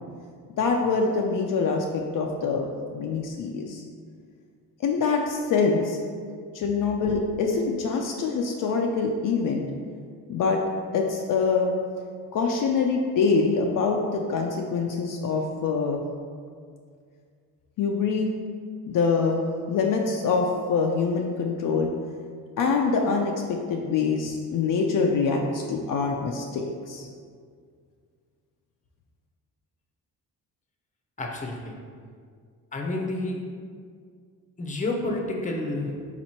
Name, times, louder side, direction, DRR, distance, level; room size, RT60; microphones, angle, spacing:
voice 1, 0.6-3.8 4.8-6.0 6.5-9.7 10.3-10.6 10.9-11.7 12.3-16.0 17.8-18.3 18.9-19.4 19.7-21.9 22.6-27.1, left 4 dB, 60° left, 1 dB, 0.5 m, -25 dB
voice 2, 31.2-31.8 32.7-33.4 34.6-35.9, left 2 dB, 20° left, 0 dB, 0.7 m, -29 dB
4.1 x 3.0 x 4.2 m, 2.1 s
cardioid pair, 90°, 38 cm